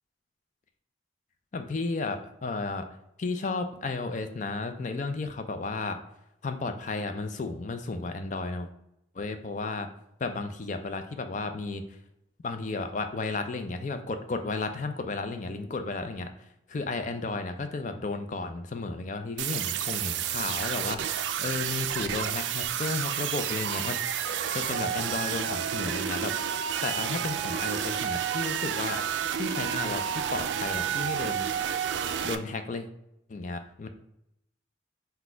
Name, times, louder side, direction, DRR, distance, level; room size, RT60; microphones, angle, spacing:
voice 1, 1.5-2.9 3.2-6.0 6.4-8.7 9.1-9.9 10.2-11.8 12.4-16.3 16.7-24.0 24.5-26.3 26.6-29.0 29.4-31.5 32.2-32.9 33.3-33.9, left 3 dB, 40° left, 8 dB, 0.4 m, -33 dB
sound 1, 19.4-32.3, right 9 dB, 80° right, 0.3 m, -30 dB
4.2 x 2.2 x 4.4 m, 0.82 s
head